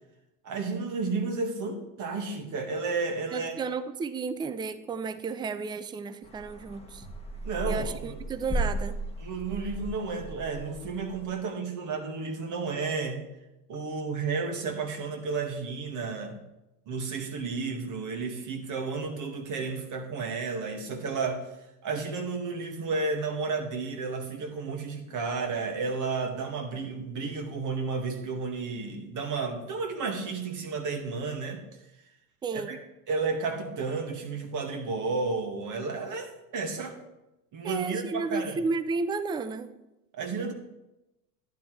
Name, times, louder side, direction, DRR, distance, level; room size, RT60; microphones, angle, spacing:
voice 1, 0.4-3.5 7.4-8.2 9.2-13.2 13.7-16.4 16.9-21.5 21.8-31.6 32.5-32.8 33.1-37.0 37.5-38.6 40.1-40.5, right 4 dB, 40° right, 4 dB, 2.0 m, -32 dB
voice 2, 3.3-7.1 7.7-9.0 32.4-32.8 37.6-39.7, right 4 dB, 10° right, 13 dB, 0.4 m, -33 dB
sound 1, 6.2-11.2, right 1 dB, 15° left, 1.4 m, -35 dB
11.5 x 10.0 x 3.3 m, 0.95 s
hypercardioid pair, 95°, 47 cm